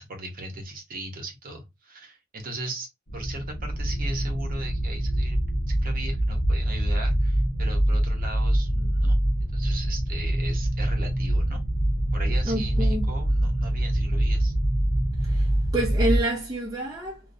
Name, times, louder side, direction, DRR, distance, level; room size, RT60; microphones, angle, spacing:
voice 1, 0.0-2.9 3.1-5.4 5.7-11.6 12.1-14.5, right 2 dB, 45° right, 0.8 m, -38 dB
sound 1, 3.1-16.2, right 1 dB, 90° left, 0.9 m, -24 dB
voice 2, 12.4-13.1 15.2-17.2, right 1 dB, 20° right, 0.4 m, -28 dB
2.5 x 2.0 x 2.5 m
head